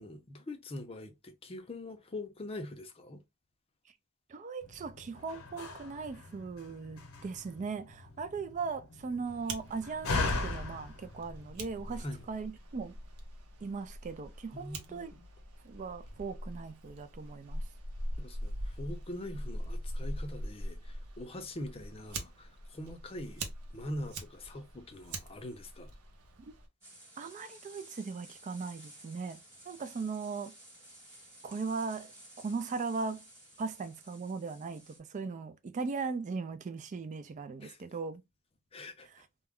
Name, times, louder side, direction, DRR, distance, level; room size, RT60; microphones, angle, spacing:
voice 1, 0.0-3.2 11.9-12.2 14.5-15.2 18.2-25.9 37.6-37.8 38.7-39.2, left 1 dB, 25° left, 0.5 m, -43 dB
voice 2, 4.3-12.9 13.6-15.1 15.6-17.7 26.4-26.5 27.2-29.4 29.7-30.5 31.4-32.1 32.4-33.2 33.6-38.2, right 4 dB, 35° right, 0.3 m, -38 dB
Slam, 4.6-12.2, left 3 dB, 80° left, 0.8 m, -39 dB
Fire, 9.3-26.7, right 1 dB, 85° right, 0.7 m, -43 dB
sound 1, 26.8-35.0, right 1 dB, 15° right, 1.2 m, -54 dB
2.3 x 2.1 x 3.5 m
head